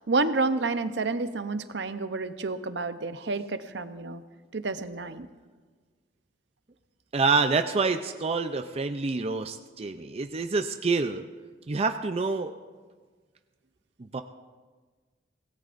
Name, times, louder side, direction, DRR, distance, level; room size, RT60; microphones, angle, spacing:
voice 1, 0.0-4.2 4.5-5.3, right 3 dB, 70° right, 11 dB, 0.7 m, -29 dB
voice 2, 7.1-11.2 11.7-12.5 14.0-14.2, right 4 dB, 35° right, 7 dB, 0.5 m, -27 dB
24.5 x 18.0 x 2.6 m, 1.4 s
head